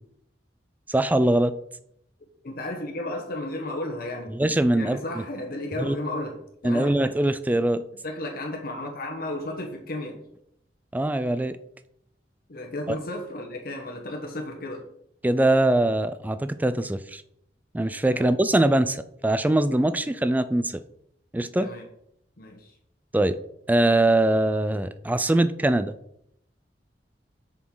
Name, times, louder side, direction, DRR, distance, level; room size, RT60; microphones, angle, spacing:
voice 1, 0.9-1.5 4.3-5.0 5.8-6.0 6.6-7.8 10.9-11.6 15.2-17.2 17.7-20.8 21.3-21.7 23.1-23.4 23.7-25.9, right 1 dB, 10° right, 12 dB, 0.4 m, -22 dB
voice 2, 2.4-4.3 4.7-7.0 8.0-10.2 12.5-14.9 18.1-18.3 21.6-21.9 22.4-22.7, left 1 dB, 55° left, 1 dB, 1.1 m, -33 dB
7.2 x 6.4 x 3.9 m, 0.74 s
head